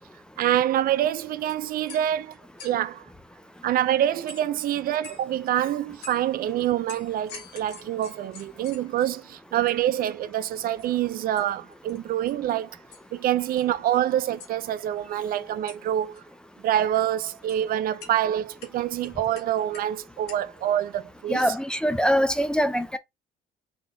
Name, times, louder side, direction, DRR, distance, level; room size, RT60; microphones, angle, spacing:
voice 1, 0.4-2.4 2.6-3.0 3.6-12.8 13.1-16.2 16.6-21.5, right 11 dB, 60° right, 0.5 m, -26 dB
sound 1, 1.5-2.9 4.3-4.6 5.0-5.5 6.0-6.3 6.9-9.2 9.7-9.8 10.1-10.2 10.5-10.9 11.4-11.5 11.7-12.0 12.3-12.5 12.9-13.1 13.4-14.1 14.4-14.5 15.7-16.2 16.8-17.6 18.0-18.1 18.6-20.0 20.3-20.6, left 5 dB, 80° left, 1.4 m, -46 dB
voice 2, 21.3-23.0, equal, 5° left, 0.5 m, -23 dB
3.9 x 3.8 x 2.7 m
cardioid pair, 110°, 17 cm